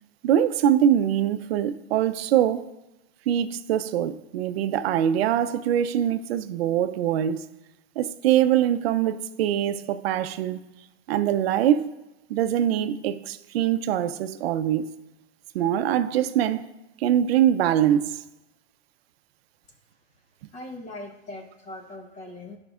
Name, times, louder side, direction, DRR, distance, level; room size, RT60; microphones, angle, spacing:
voice 1, 0.2-2.7 3.3-7.5 8.0-10.6 11.1-11.9 12.3-14.9 15.5-16.7 17.0-18.2, right 10 dB, 60° right, 0.6 m, -23 dB
voice 2, 20.5-22.6, left 1 dB, 20° left, 0.9 m, -40 dB
15.0 x 5.3 x 2.4 m
hypercardioid pair, 140°, 34 cm